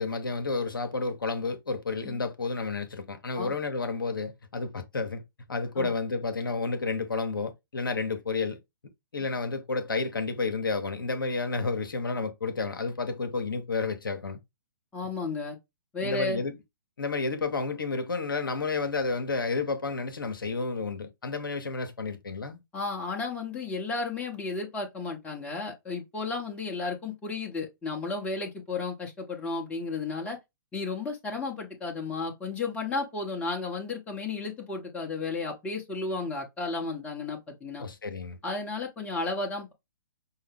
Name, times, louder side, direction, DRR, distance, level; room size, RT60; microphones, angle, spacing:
voice 1, 0.0-5.2 5.5-8.6 9.1-14.4 16.0-16.5 17.0-22.6 37.8-38.4, left 4 dB, 75° left, 0.8 m, -31 dB
voice 2, 14.9-15.6 15.9-16.4 22.7-30.4 30.7-37.8 38.4-39.7, left 3 dB, 10° left, 1.1 m, -33 dB
5.5 x 2.1 x 3.4 m
figure-of-eight pair, 120°, 11 cm